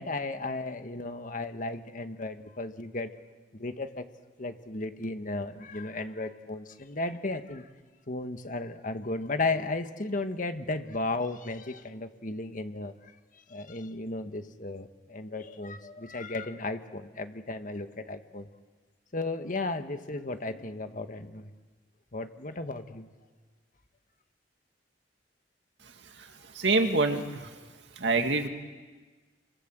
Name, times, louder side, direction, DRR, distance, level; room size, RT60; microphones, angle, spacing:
voice 1, 0.0-3.1 3.5-4.0 4.4-7.6 8.1-13.1 13.5-18.5 19.1-21.5 22.1-23.1, left 2 dB, 45° left, 8 dB, 1.5 m, -34 dB
voice 2, 26.2-27.6 28.0-28.5, right 3 dB, 75° right, 5 dB, 2.4 m, -27 dB
28.0 x 25.0 x 7.7 m, 1.4 s
head